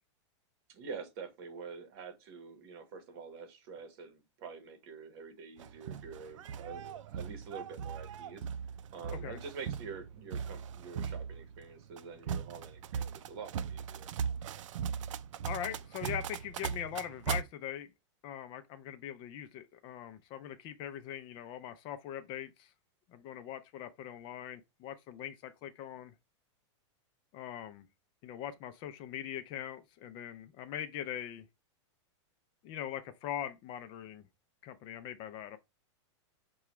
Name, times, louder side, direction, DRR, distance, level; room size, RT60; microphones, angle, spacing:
voice 1, 0.7-8.5 8.9-14.1, right 5 dB, 50° right, 1.2 m, -46 dB
sound 1, 5.6-17.4, right 7 dB, 90° right, 0.4 m, -39 dB
voice 2, 15.4-17.9 18.2-22.7 23.1-26.1 27.3-27.9 28.2-31.4 32.6-34.2 34.6-35.6, left 10 dB, 30° left, 0.4 m, -41 dB
5.7 x 2.3 x 3.0 m
supercardioid pair, 150°, 16 cm